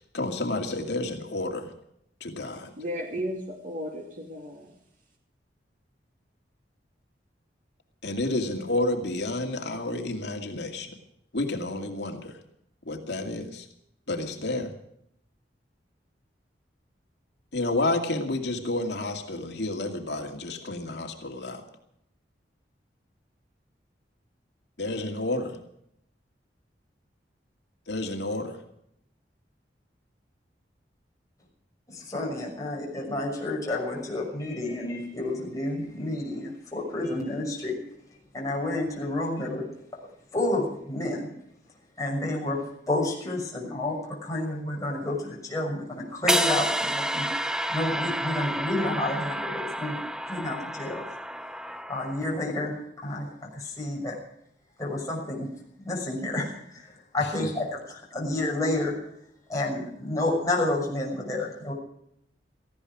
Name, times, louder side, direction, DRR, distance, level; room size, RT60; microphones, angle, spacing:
voice 1, 0.1-1.7 2.2-2.7 8.0-10.9 11.3-12.3 12.9-13.6 14.1-14.7 17.5-21.6 24.8-25.6 27.9-28.6, left 2 dB, 70° left, 3 dB, 2.4 m, -30 dB
voice 2, 2.8-4.8, equal, 45° right, 1 dB, 2.6 m, -34 dB
voice 3, 31.9-37.7 38.3-39.6 40.3-41.2 42.0-42.6 42.9-44.0 44.2-47.3 47.7-51.0 51.9-52.7 53.0-54.2 54.8-55.5 55.8-56.5 57.1-58.9 59.5-61.7, left 2 dB, 20° left, -3 dB, 6.3 m, -30 dB
sound 1, 46.3-52.4, right 1 dB, 5° right, 0.6 m, -30 dB
18.5 x 15.0 x 4.9 m, 0.73 s
head